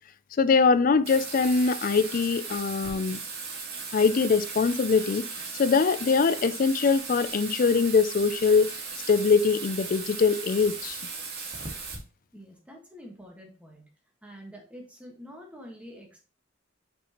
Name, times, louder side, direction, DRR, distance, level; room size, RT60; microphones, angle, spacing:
voice 1, 0.4-3.2 3.9-5.3 5.6-8.7 9.1-11.0, left 5 dB, 45° left, 0.3 m, -22 dB
Bathtub (filling or washing), 1.0-11.9, right 4 dB, 50° right, 1.8 m, -37 dB
voice 2, 12.3-13.8 14.2-16.2, equal, 5° right, 1.6 m, -46 dB
6.5 x 5.4 x 3.0 m
head